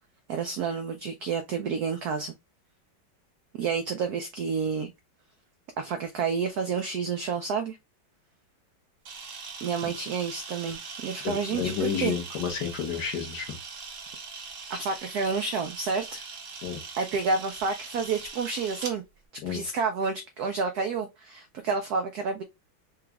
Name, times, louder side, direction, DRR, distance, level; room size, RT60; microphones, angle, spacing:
voice 1, 0.3-2.3 3.6-4.9 5.8-7.8 9.6-12.2 14.7-16.2 17.0-19.0 19.3-22.4, right 5 dB, 80° right, 0.8 m, -29 dB
Camera, 9.0-18.9, right 5 dB, 50° right, 1.0 m, -41 dB
voice 2, 11.2-13.5 16.6-16.8 19.4-19.6, left 7 dB, 60° left, 1.4 m, -30 dB
4.9 x 2.3 x 3.4 m
omnidirectional pair, 2.2 m